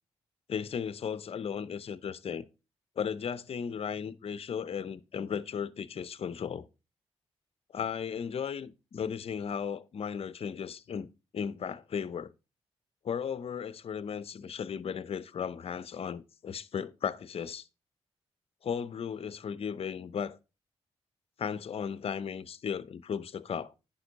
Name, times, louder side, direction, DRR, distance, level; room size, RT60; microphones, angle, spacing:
voice 1, 0.5-2.5 3.0-6.7 7.7-11.1 11.3-12.3 13.0-17.7 18.6-20.4 21.4-23.7, left 7 dB, 60° left, 0.7 m, -35 dB
9.9 x 5.3 x 4.0 m
cardioid pair, 60°, 11 cm